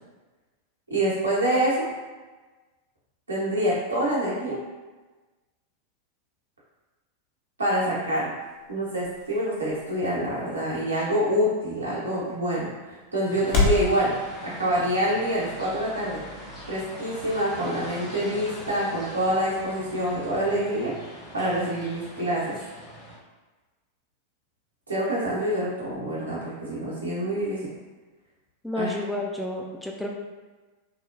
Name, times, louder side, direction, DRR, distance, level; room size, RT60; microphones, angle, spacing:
voice 1, 0.9-1.8 3.3-4.6 7.6-8.3 8.7-14.1 14.4-16.2 16.7-22.6 24.9-27.7 28.8-28.9, equal, 80° right, -7 dB, 0.9 m, -26 dB
sound 1, 7.6-13.9, left 3 dB, 45° left, 0.6 m, -32 dB
sound 2, 13.3-23.2, equal, 20° left, 0.9 m, -41 dB
voice 2, 28.6-30.1, left 1 dB, 5° left, -1 dB, 0.3 m, -30 dB
3.1 x 2.1 x 2.5 m, 1.2 s
figure-of-eight pair, 90°, 0 cm